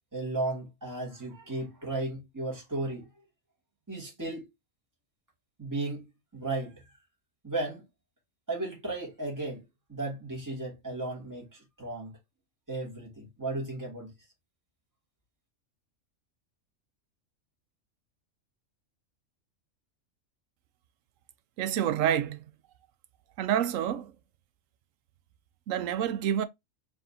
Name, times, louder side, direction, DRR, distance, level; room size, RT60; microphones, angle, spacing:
voice 1, 0.1-3.1 3.9-4.5 5.6-6.9 7.4-7.8 8.5-9.6 9.9-12.1 12.7-14.1, right 2 dB, 15° right, 2.3 m, -35 dB
voice 2, 21.6-22.4 23.4-24.1 25.7-26.4, right 10 dB, 85° right, 1.0 m, -28 dB
4.7 x 3.4 x 2.7 m
omnidirectional pair, 1.3 m